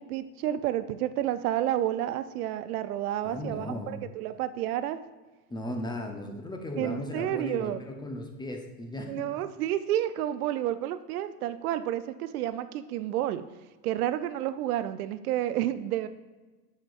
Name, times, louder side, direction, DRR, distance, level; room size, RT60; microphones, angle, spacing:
voice 1, 0.0-5.0 6.8-7.8 9.1-13.5 13.8-16.1, right 12 dB, 65° right, 13 dB, 0.5 m, -30 dB
voice 2, 3.2-4.0 5.5-9.3, left 1 dB, 10° left, 3 dB, 0.6 m, -36 dB
10.0 x 5.1 x 2.5 m, 1.2 s
hypercardioid pair, 100°, 48 cm